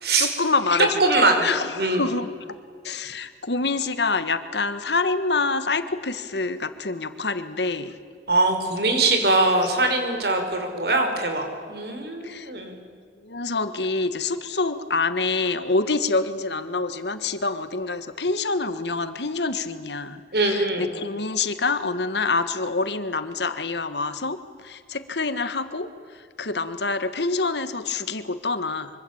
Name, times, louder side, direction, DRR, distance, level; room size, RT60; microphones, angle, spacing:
voice 1, 0.2-2.6 2.8-7.9 12.2-12.5 13.2-24.4 24.6-25.9 26.4-28.9, left 3 dB, 80° left, 11 dB, 1.7 m, -26 dB
voice 2, 1.0-1.4 1.8-2.1 8.3-12.7 20.3-20.9, right 2 dB, 65° right, 5 dB, 5.2 m, -22 dB
25.0 x 25.0 x 8.9 m, 2.1 s
head